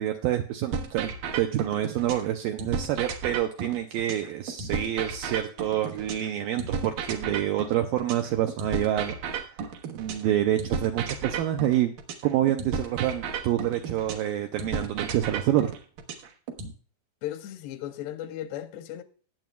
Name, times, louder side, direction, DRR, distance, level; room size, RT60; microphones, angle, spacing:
voice 1, 0.0-9.6 9.9-11.9 12.2-15.7, right 12 dB, 85° right, 2.0 m, -27 dB
sound 1, 0.7-2.3 2.6-6.3 6.6-10.3 10.6-14.3 14.6-16.7, right 5 dB, 70° right, 2.5 m, -33 dB
voice 2, 17.2-19.0, left 12 dB, 85° left, 2.7 m, -36 dB
18.0 x 7.7 x 2.3 m
omnidirectional pair, 4.7 m